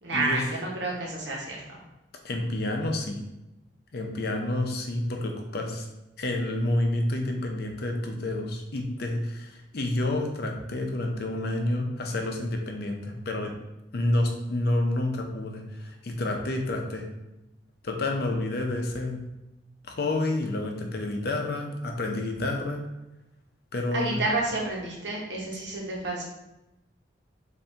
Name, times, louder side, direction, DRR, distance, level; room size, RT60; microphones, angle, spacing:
voice 1, 0.0-1.8 23.9-26.2, right 2 dB, 70° right, -3 dB, 1.1 m, -30 dB
voice 2, 2.2-3.2 3.9-5.9 6.2-13.5 13.9-17.0 17.8-19.2 19.9-22.8 23.7-24.2, left 1 dB, 60° left, 2 dB, 0.6 m, -29 dB
4.1 x 2.7 x 3.4 m, 0.95 s
head